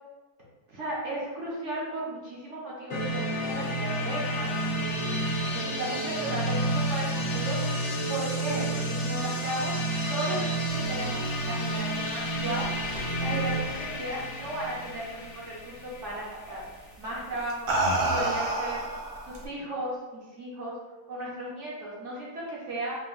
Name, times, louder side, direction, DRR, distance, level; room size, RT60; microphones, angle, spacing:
voice 1, 0.7-5.2 5.5-7.6 8.1-9.8 10.1-10.6 10.9-12.7 13.0-16.6 17.0-17.7 18.0-18.8 19.2-20.7 21.1-23.0, right 1 dB, 55° right, -5 dB, 0.9 m, -35 dB
sound 1, 2.9-16.6, right 1 dB, 90° left, 0.5 m, -30 dB
sound 2, 11.6-14.5 14.8-15.2 16.5-16.7 17.3-19.5, right 2 dB, 85° right, 0.4 m, -30 dB
4.6 x 2.1 x 2.4 m, 1.2 s
omnidirectional pair, 1.7 m